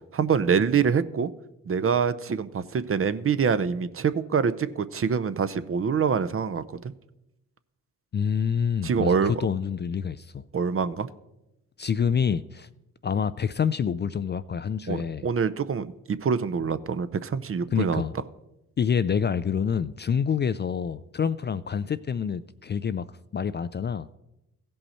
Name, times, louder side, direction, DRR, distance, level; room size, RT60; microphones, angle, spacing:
voice 1, 0.1-1.3 1.7-6.6 8.8-9.3 10.5-11.1 14.9-18.0, right 6 dB, 35° right, 0.7 m, -25 dB
voice 2, 8.1-10.4 11.8-12.7 13.0-15.2 17.7-18.1 18.8-23.1 23.3-24.1, left 7 dB, 30° left, 0.4 m, -27 dB
16.0 x 5.4 x 4.3 m
hypercardioid pair, 45°, 37 cm